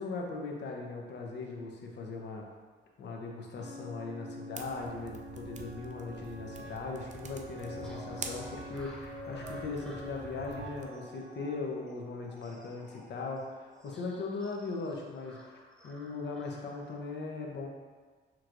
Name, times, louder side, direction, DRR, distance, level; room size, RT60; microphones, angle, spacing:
voice 1, 0.0-2.4 3.0-15.6 15.8-17.7, left 3 dB, 60° left, 0 dB, 0.8 m, -39 dB
sound 1, 3.6-11.5, left 1 dB, 70° right, 1.4 m, -46 dB
sound 2, 4.6-10.8, right 5 dB, 40° right, 0.5 m, -46 dB
sound 3, 7.8-16.9, right 1 dB, 5° left, 0.9 m, -53 dB
6.0 x 3.1 x 2.5 m, 1.5 s
cardioid pair, 90°, 20 cm